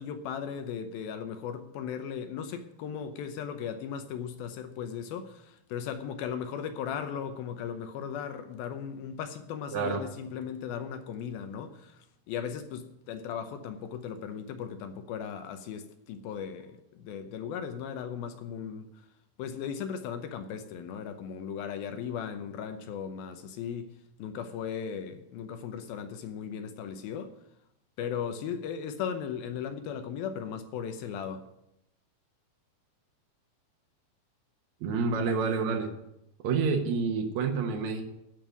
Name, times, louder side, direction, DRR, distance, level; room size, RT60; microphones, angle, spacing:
voice 1, 0.0-18.9 19.4-27.3 28.0-31.4, left 7 dB, 75° left, 2.3 m, -37 dB
voice 2, 9.7-10.0 34.8-35.9 36.4-38.0, right 5 dB, 75° right, 1.7 m, -28 dB
14.0 x 5.4 x 9.4 m
omnidirectional pair, 5.0 m